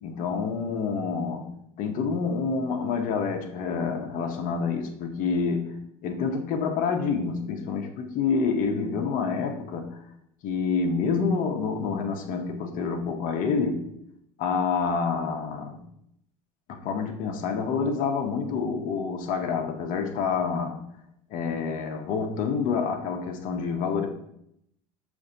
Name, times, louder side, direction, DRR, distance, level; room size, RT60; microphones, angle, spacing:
voice 1, 0.0-1.5 1.8-5.7 6.0-10.0 10.4-13.9 14.4-15.8 16.7-20.8 21.3-24.1, left 5 dB, 50° left, 4 dB, 0.8 m, -27 dB
7.0 x 2.6 x 2.6 m, 0.75 s
hypercardioid pair, 85°, 17 cm